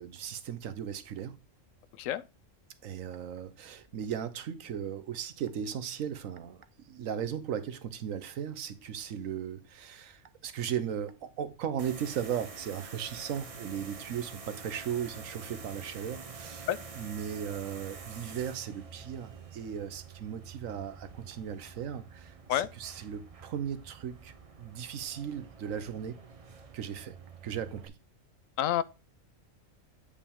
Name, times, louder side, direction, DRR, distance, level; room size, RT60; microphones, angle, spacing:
voice 1, 0.0-1.4 2.8-24.3 24.6-26.2 26.7-27.2 27.4-27.9, right 8 dB, 80° right, 1.2 m, -37 dB
voice 2, 2.0-2.2 16.7-16.8 22.5-22.7 28.6-28.8, left 12 dB, 80° left, 0.9 m, -28 dB
sound 1, 11.8-27.9, right 5 dB, 35° right, 0.7 m, -48 dB
8.5 x 5.2 x 3.6 m
omnidirectional pair, 1.4 m